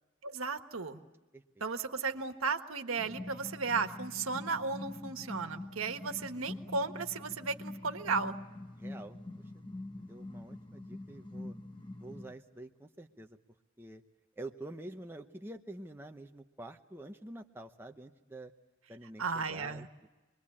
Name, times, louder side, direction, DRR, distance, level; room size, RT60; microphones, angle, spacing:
voice 1, 0.2-1.0 1.6-8.4 19.2-19.9, right 4 dB, 90° right, 7 dB, 1.5 m, -35 dB
voice 2, 1.3-1.6 8.8-9.2 9.5-9.6 9.9-11.6 12.0-13.4 13.8-14.0 14.4-18.5 18.9-20.1, right 1 dB, 10° right, 4 dB, 0.8 m, -47 dB
sound 1, 3.0-12.3, left 2 dB, 20° left, 1.0 m, -45 dB
27.5 x 22.0 x 8.7 m, 1.2 s
head